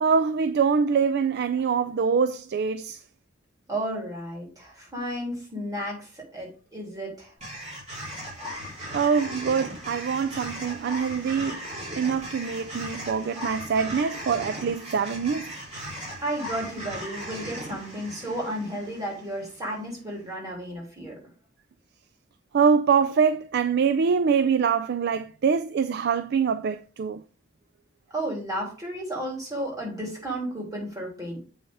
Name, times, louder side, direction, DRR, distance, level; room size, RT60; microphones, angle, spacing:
voice 1, 0.0-3.0 8.9-11.6 12.0-15.6 22.5-27.2, right 6 dB, 55° right, 0.4 m, -24 dB
voice 2, 3.7-7.3 16.2-21.2 28.1-31.4, right 1 dB, 20° right, 3.4 m, -33 dB
sound 1, 7.4-19.7, equal, 35° right, 3.7 m, -38 dB
8.0 x 5.4 x 3.4 m
head